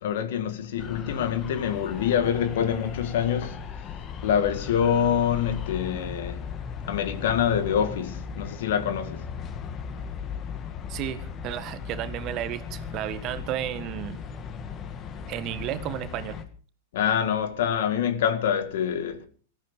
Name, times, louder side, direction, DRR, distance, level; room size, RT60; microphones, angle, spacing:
voice 1, 0.0-3.6 4.2-6.4 6.9-9.2 16.9-19.2, left 8 dB, 65° left, 2.0 m, -25 dB
sound 1, 0.8-16.4, left 6 dB, 30° left, 2.0 m, -37 dB
voice 2, 10.9-14.2 15.3-16.4, right 12 dB, 40° right, 1.7 m, -33 dB
18.5 x 13.5 x 5.1 m
hypercardioid pair, 105°, 0 cm